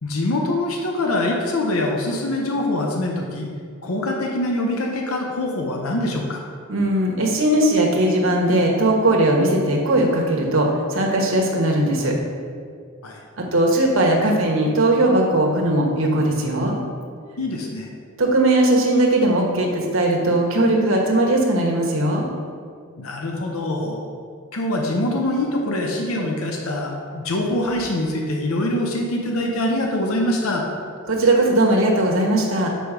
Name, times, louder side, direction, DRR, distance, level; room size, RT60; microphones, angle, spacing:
voice 1, 0.0-3.5 3.8-6.4 13.0-13.2 17.4-17.9 23.0-24.0 24.5-30.6, left 1 dB, 85° left, 0 dB, 0.8 m, -24 dB
voice 2, 6.7-12.1 13.4-16.8 18.2-22.2 31.1-32.7, right 1 dB, 65° right, 0 dB, 1.2 m, -19 dB
6.0 x 5.0 x 5.1 m, 2.1 s
head